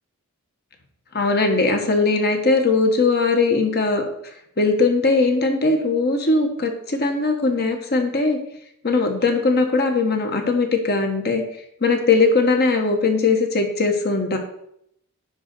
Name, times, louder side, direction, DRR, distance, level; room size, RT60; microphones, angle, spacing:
voice 1, 1.1-4.0 4.6-8.4 8.8-11.4 11.8-14.4, left 3 dB, 50° left, 4 dB, 1.4 m, -19 dB
10.0 x 4.0 x 6.6 m, 0.74 s
head